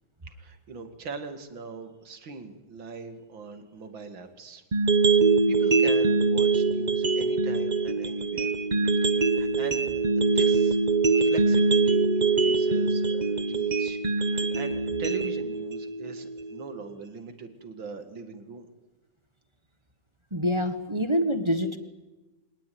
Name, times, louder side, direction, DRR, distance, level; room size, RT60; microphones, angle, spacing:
voice 1, 0.2-4.6 5.2-8.5 9.3-10.8 11.1-18.7, right 4 dB, 60° right, 7 dB, 2.9 m, -41 dB
sound 1, 4.7-16.7, right 4 dB, 35° right, 0.7 m, -23 dB
voice 2, 20.3-21.8, equal, 15° right, 8 dB, 1.2 m, -26 dB
25.0 x 19.5 x 9.4 m, 1.1 s
omnidirectional pair, 2.4 m